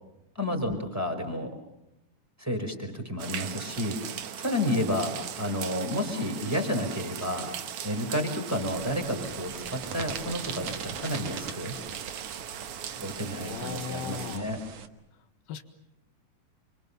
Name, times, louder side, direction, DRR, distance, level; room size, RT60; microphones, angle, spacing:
voice 1, 0.3-1.5 2.4-4.0 4.4-7.5 7.8-11.7 12.9-14.6, left 1 dB, 5° right, 4 dB, 4.6 m, -31 dB
sound 1, 3.2-14.4, right 9 dB, 70° right, 1.3 m, -39 dB
sound 2, 8.6-14.9, right 7 dB, 55° right, 2.2 m, -42 dB
voice 2, 13.3-14.5 15.5-15.6, left 8 dB, 80° left, 9 dB, 3.4 m, -38 dB
30.0 x 25.5 x 7.1 m, 0.87 s
omnidirectional pair, 4.2 m